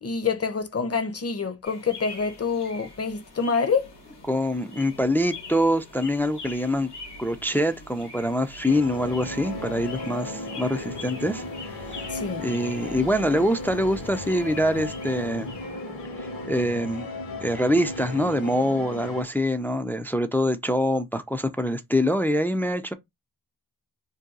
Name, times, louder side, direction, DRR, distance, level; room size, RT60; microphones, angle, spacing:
voice 1, 0.0-3.9 12.1-12.4, left 5 dB, 35° left, 0.7 m, -26 dB
sound 1, 1.6-16.8, left 2 dB, 75° left, 1.3 m, -43 dB
voice 2, 4.3-6.9 7.2-11.4 11.8-12.0 12.4-15.5 16.2-17.1 17.4-22.9, equal, 5° left, 0.4 m, -25 dB
sound 2, 8.7-19.2, left 2 dB, 60° left, 1.0 m, -35 dB
2.7 x 2.2 x 3.7 m
cardioid pair, 40°, 41 cm